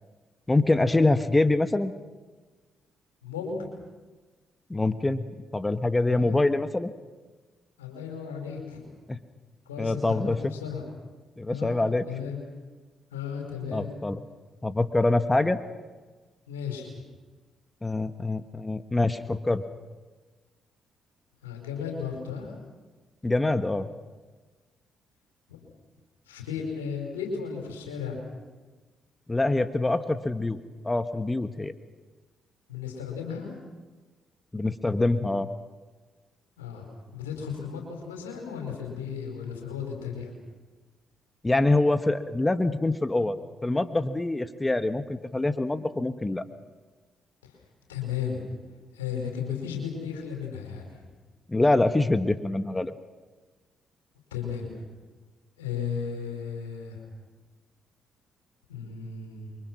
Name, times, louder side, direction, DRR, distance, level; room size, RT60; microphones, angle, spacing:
voice 1, 0.5-1.9 4.7-6.9 9.1-9.2 9.8-10.5 11.4-12.0 13.7-14.2 14.6-15.6 17.8-19.6 23.2-23.9 29.3-31.7 34.5-35.5 41.4-43.4 43.6-46.4 51.5-52.9, left 2 dB, 20° left, 10 dB, 1.4 m, -25 dB
voice 2, 3.2-3.7 6.1-6.4 7.8-8.9 9.6-10.8 11.5-12.4 13.1-13.9 16.5-17.0 21.4-22.5 25.5-25.6 26.3-28.2 32.7-33.5 36.6-36.9 37.1-40.3 47.4-47.6 47.9-48.4 48.9-51.0 54.3-54.8 55.6-57.0 58.7-59.6, left 6 dB, 90° left, 2 dB, 5.1 m, -35 dB
29.0 x 24.0 x 6.3 m, 1.3 s
hypercardioid pair, 45°, 0 cm